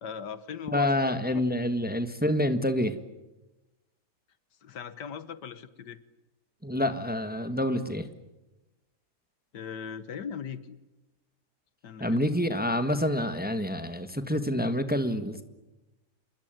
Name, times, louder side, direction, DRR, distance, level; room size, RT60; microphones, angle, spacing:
voice 1, 0.0-1.5 4.6-6.0 9.5-10.8 11.8-12.3, left 7 dB, 80° left, 14 dB, 1.8 m, -39 dB
voice 2, 0.7-3.0 6.6-8.1 12.0-15.4, left 1 dB, 5° right, 9 dB, 1.3 m, -27 dB
28.0 x 21.5 x 9.2 m, 1.0 s
omnidirectional pair, 1.8 m